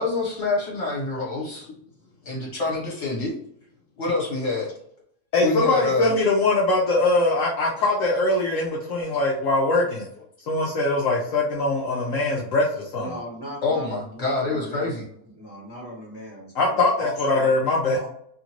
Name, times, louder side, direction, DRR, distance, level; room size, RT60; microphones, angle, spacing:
voice 1, 0.0-1.7 2.2-3.3 4.0-4.7 5.4-6.1 13.6-15.0, left 3 dB, 50° left, -4 dB, 1.5 m, -26 dB
voice 2, 5.3-10.1 10.5-13.1 16.6-18.1, left 2 dB, 70° left, -2 dB, 0.9 m, -22 dB
voice 3, 13.0-15.0 15.4-18.1, equal, 20° right, -6 dB, 0.9 m, -38 dB
2.8 x 2.5 x 2.9 m, 0.68 s
omnidirectional pair, 1.6 m